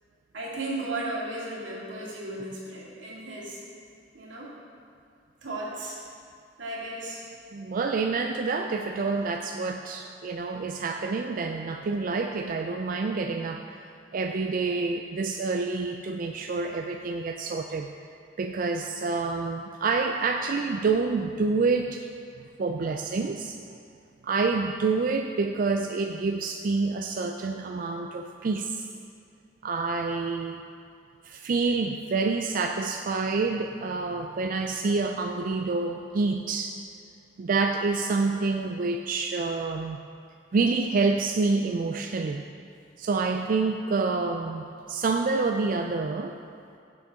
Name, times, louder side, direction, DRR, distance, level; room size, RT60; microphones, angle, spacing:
voice 1, 0.3-3.6 4.1-4.5 5.4-6.0 6.6-7.2, right 2 dB, 85° right, -5 dB, 2.2 m, -35 dB
voice 2, 7.5-13.8 14.1-17.9 18.4-22.1 22.6-23.6 24.2-28.9 29.6-30.6 31.2-36.8 37.4-40.0 40.5-42.4 43.0-46.3, right 4 dB, 50° right, 4 dB, 0.4 m, -27 dB
15.0 x 6.4 x 3.6 m, 2.4 s
head